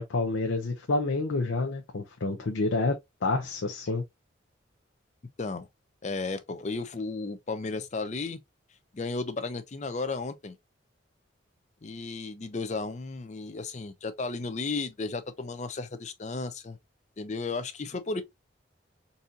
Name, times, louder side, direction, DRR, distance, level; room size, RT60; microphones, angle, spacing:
voice 1, 0.0-2.9 3.2-4.0, left 3 dB, 85° left, 0.6 m, -28 dB
voice 2, 6.0-8.4 8.9-10.5 11.8-16.8 17.2-18.2, left 3 dB, 35° left, 0.5 m, -34 dB
4.0 x 2.6 x 2.6 m
head